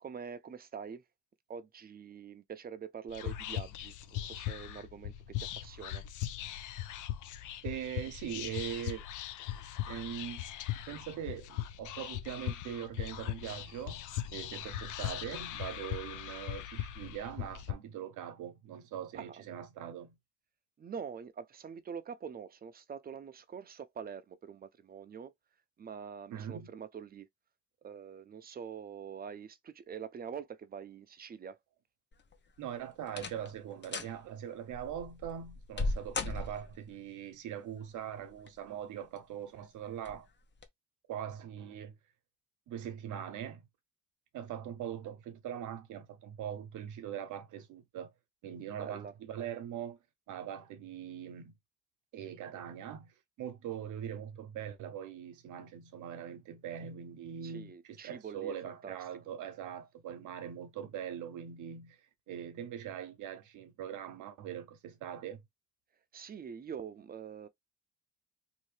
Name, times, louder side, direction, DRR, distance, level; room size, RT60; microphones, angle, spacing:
voice 1, 0.0-1.0 1.5-5.1 5.6-6.0 19.1-19.4 20.8-25.3 25.8-27.3 27.8-31.6 48.8-49.1 57.4-58.5 58.8-59.0 66.1-67.5, right 7 dB, 30° right, 0.5 m, -45 dB
Whispering, 3.1-17.7, left 12 dB, 80° left, 0.6 m, -39 dB
voice 2, 7.6-9.0 9.9-10.4 10.9-14.1 14.3-20.2 26.3-26.7 32.6-40.3 41.1-42.0 42.7-43.7 44.3-48.1 48.4-50.0 50.3-51.5 52.1-65.4, right 9 dB, 80° right, 0.8 m, -42 dB
sound 1, 32.1-32.6 33.1-33.5 33.8-34.2 34.7-36.9 38.1-38.7 39.2-39.3 40.0-40.2 40.6-40.7, left 3 dB, 35° left, 0.8 m, -37 dB
2.8 x 2.6 x 3.2 m
cardioid pair, 90°, 30 cm